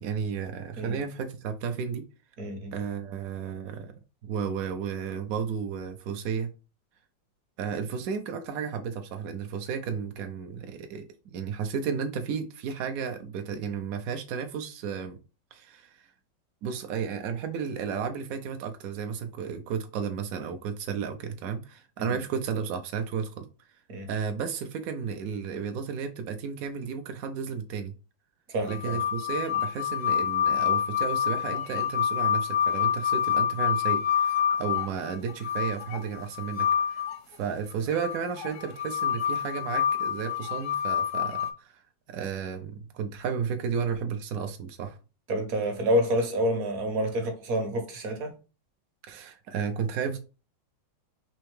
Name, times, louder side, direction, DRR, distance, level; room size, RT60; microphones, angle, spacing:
voice 1, 0.0-2.0 2.7-3.9 4.2-6.5 7.6-15.2 15.5-16.1 16.6-23.5 24.1-27.9 28.6-41.8 42.1-45.0 49.1-50.2, right 6 dB, 80° right, 0.8 m, -33 dB
voice 2, 2.4-2.7 22.0-22.1 23.9-24.1 28.5-29.0 45.3-48.3, equal, 55° right, 1.2 m, -28 dB
sound 1, 28.7-37.2 38.0-41.5, left 9 dB, 70° left, 0.7 m, -27 dB
4.2 x 2.7 x 3.1 m
omnidirectional pair, 2.0 m